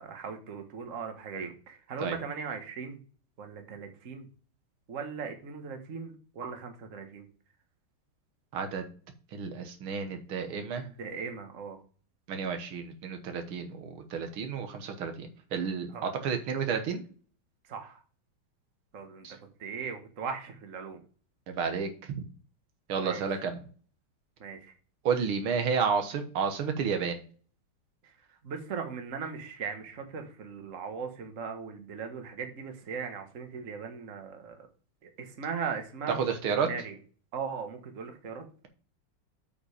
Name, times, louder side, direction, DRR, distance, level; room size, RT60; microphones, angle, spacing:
voice 1, 0.0-3.0 3.4-4.3 4.9-7.3 10.8-11.8 15.9-16.1 17.7-18.0 18.9-19.3 19.6-21.0 23.0-23.2 24.4-24.7 28.4-34.7 35.0-36.2 36.6-36.9 37.3-38.4, right 6 dB, 40° right, 5 dB, 1.7 m, -38 dB
voice 2, 8.5-8.9 9.3-10.9 12.3-17.0 19.2-19.4 21.5-22.3 22.9-23.6 25.1-27.2 36.2-36.7, right 6 dB, 75° right, 6 dB, 2.0 m, -31 dB
8.4 x 5.1 x 5.0 m, 0.41 s
omnidirectional pair, 2.3 m